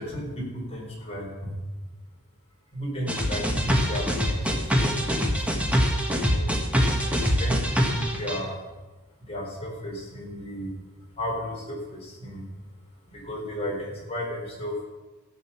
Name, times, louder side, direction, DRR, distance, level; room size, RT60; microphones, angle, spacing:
voice 1, 0.0-1.5 2.7-5.5 6.2-6.5 7.2-8.5 9.3-10.7 11.2-12.4 13.1-14.9, left 1 dB, 30° left, -3 dB, 4.1 m, -34 dB
sound 1, 3.1-8.4, equal, 5° right, 1.4 m, -24 dB
16.0 x 8.0 x 5.9 m, 1.2 s
head